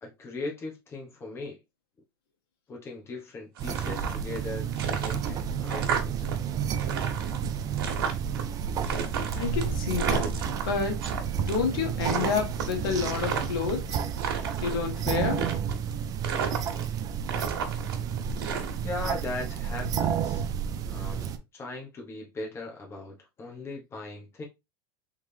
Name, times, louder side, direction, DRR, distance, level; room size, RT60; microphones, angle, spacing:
voice 1, 0.0-1.6 2.7-6.3 18.8-20.4 20.9-24.4, left 2 dB, 20° left, 1.4 m, -39 dB
sound 1, 3.6-21.4, right 7 dB, 30° right, 0.5 m, -31 dB
sound 2, 3.6-4.4 4.7-6.3 6.6-8.4 8.8-11.2 11.5-11.8 12.0-13.7 14.1-14.8 15.3-15.9 16.2-17.0 17.3-19.1, right 6 dB, 80° right, 1.3 m, -33 dB
voice 2, 9.4-10.3 10.6-14.0 14.6-15.5, left 6 dB, 70° left, 1.5 m, -29 dB
3.7 x 3.7 x 3.4 m
supercardioid pair, 140°, 12 cm